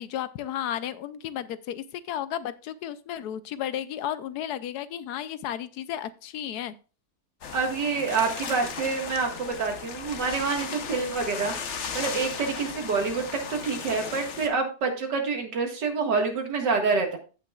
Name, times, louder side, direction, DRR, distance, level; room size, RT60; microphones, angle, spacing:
voice 1, 0.0-6.7, left 10 dB, 75° left, 15 dB, 1.1 m, -33 dB
sound 1, 7.4-14.5, left 6 dB, 50° left, 1.1 m, -36 dB
voice 2, 7.5-11.5 11.9-17.2, right 4 dB, 85° right, 3 dB, 2.3 m, -27 dB
15.5 x 5.8 x 2.3 m, 0.34 s
omnidirectional pair, 1.8 m